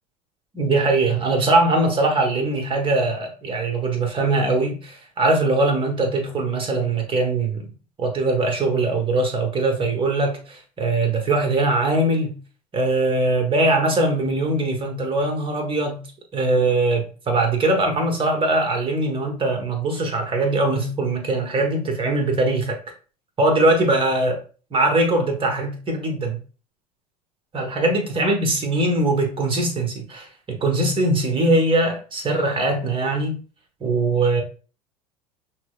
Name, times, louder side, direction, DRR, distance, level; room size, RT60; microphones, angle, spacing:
voice 1, 0.5-7.7 8.0-12.3 12.7-16.0 16.3-22.8 23.4-24.4 24.7-26.4 27.5-33.4 33.8-34.4, right 2 dB, 25° right, 1.1 m, -21 dB
5.9 x 2.1 x 2.4 m
hypercardioid pair, 80°, 20 cm